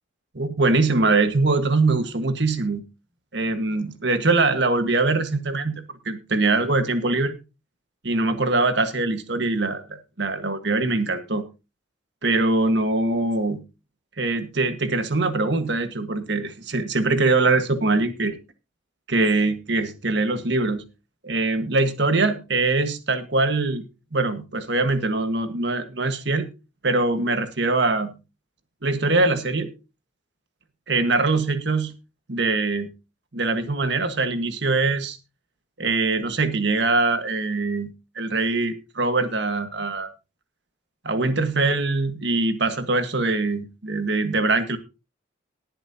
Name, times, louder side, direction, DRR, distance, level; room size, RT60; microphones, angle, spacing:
voice 1, 0.3-2.8 3.3-7.4 8.0-9.8 10.2-11.4 12.2-13.6 14.2-18.3 19.1-20.8 21.2-23.8 24.1-26.5 26.8-28.1 28.8-29.7 30.9-31.9 32.3-32.9 33.3-35.2 35.8-37.9 38.1-40.1 41.0-44.8, right 3 dB, 60° right, 9 dB, 1.6 m, -22 dB
19.0 x 9.0 x 2.8 m, 0.28 s
head